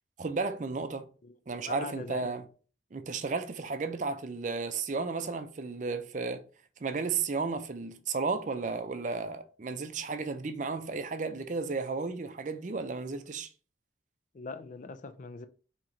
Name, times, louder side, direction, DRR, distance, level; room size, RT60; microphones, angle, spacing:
voice 1, 0.2-1.1 1.5-2.4 2.9-6.4 6.8-13.5, right 4 dB, 40° right, 0.5 m, -33 dB
voice 2, 1.2-2.3 14.3-15.5, left 3 dB, 45° left, 0.4 m, -42 dB
4.4 x 2.9 x 3.8 m
head